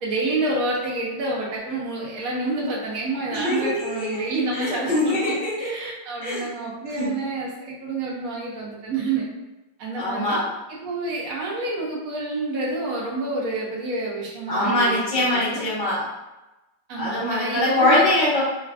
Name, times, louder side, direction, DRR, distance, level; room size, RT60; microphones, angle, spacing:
voice 1, 0.0-9.3 9.8-10.4 10.7-15.6 16.9-18.0, right 2 dB, 60° right, -4 dB, 1.0 m, -28 dB
voice 2, 3.3-4.2 4.5-5.7 6.2-6.5 7.0-7.1 10.0-10.4 14.5-16.0 16.9-18.4, left 1 dB, 30° left, -9 dB, 1.1 m, -22 dB
3.2 x 2.5 x 2.3 m, 1.0 s
omnidirectional pair, 2.0 m